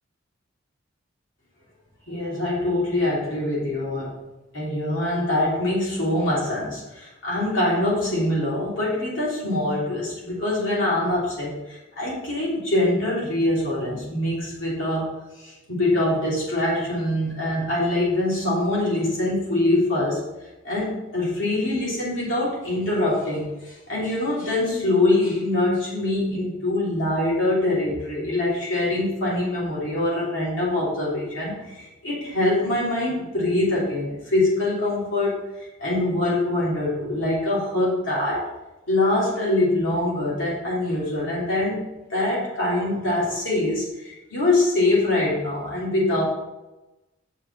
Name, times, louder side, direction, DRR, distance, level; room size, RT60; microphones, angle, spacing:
voice 1, 2.1-4.2 4.5-15.1 15.4-20.2 20.6-38.4 38.9-41.8 42.1-46.2, left 1 dB, 65° left, -6 dB, 3.3 m, -24 dB
7.5 x 5.1 x 6.9 m, 1.0 s
head